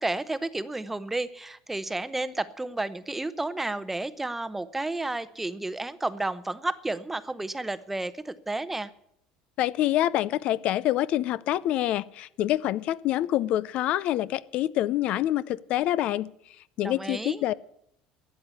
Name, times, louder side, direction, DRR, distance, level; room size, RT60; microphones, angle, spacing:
voice 1, 0.0-8.9 16.8-17.4, right 2 dB, 10° right, 14 dB, 0.7 m, -32 dB
voice 2, 9.6-16.3 16.8-17.5, left 13 dB, 60° left, 19 dB, 0.5 m, -26 dB
12.5 x 8.6 x 9.6 m, 0.73 s
supercardioid pair, 115°, 2 cm